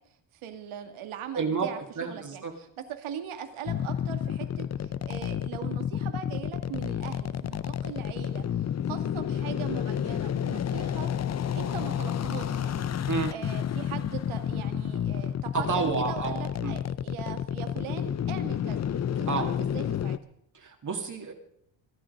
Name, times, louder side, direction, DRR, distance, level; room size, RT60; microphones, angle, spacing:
voice 1, 0.3-11.1 11.5-12.9 13.3-20.2, right 9 dB, 85° right, 7 dB, 2.3 m, -40 dB
voice 2, 1.3-2.5 13.1-13.3 15.5-16.8 19.3-19.5 20.5-21.3, right 5 dB, 40° right, 2 dB, 2.0 m, -30 dB
sound 1, 3.7-20.2, left 9 dB, 35° left, 0.6 m, -30 dB
24.0 x 10.5 x 5.3 m, 0.71 s
cardioid pair, 115°, 48 cm